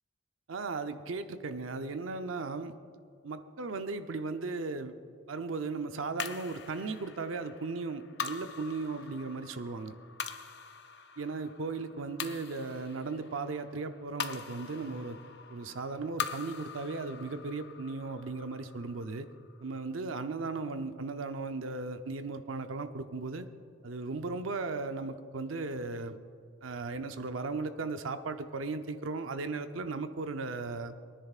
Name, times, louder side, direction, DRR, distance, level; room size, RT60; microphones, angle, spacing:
voice 1, 0.5-2.7 3.2-4.9 5.3-9.9 11.2-15.2 15.5-19.3 19.6-23.5 23.8-26.2 26.6-30.9, right 3 dB, 85° right, 9 dB, 0.6 m, -36 dB
sound 1, 6.2-20.7, left 7 dB, 60° left, 0.6 m, -43 dB
23.0 x 10.0 x 2.4 m, 2.2 s
head